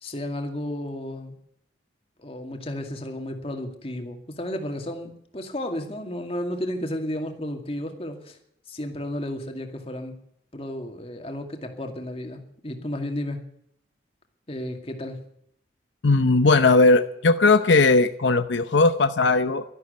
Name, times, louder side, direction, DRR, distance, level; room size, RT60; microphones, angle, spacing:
voice 1, 0.0-1.3 2.2-8.4 8.7-10.1 10.5-13.4 14.5-15.2, left 1 dB, 30° left, 4 dB, 2.2 m, -33 dB
voice 2, 16.0-19.6, left 3 dB, 80° left, 10 dB, 0.8 m, -18 dB
12.5 x 12.0 x 8.1 m, 0.71 s
head